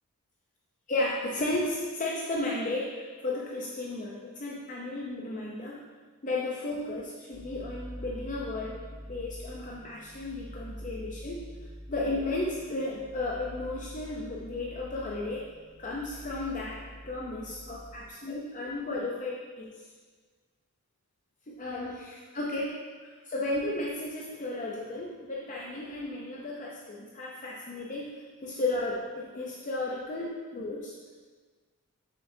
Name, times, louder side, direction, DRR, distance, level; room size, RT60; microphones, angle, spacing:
voice 1, 0.9-5.8 6.2-8.8 9.1-11.4 11.9-15.5 15.8-19.7 21.5-30.9, left 2 dB, 35° left, -3 dB, 0.6 m, -34 dB
sound 1, 7.3-18.1, equal, 35° right, 1.3 m, -45 dB
6.8 x 6.7 x 2.7 m, 1.4 s
head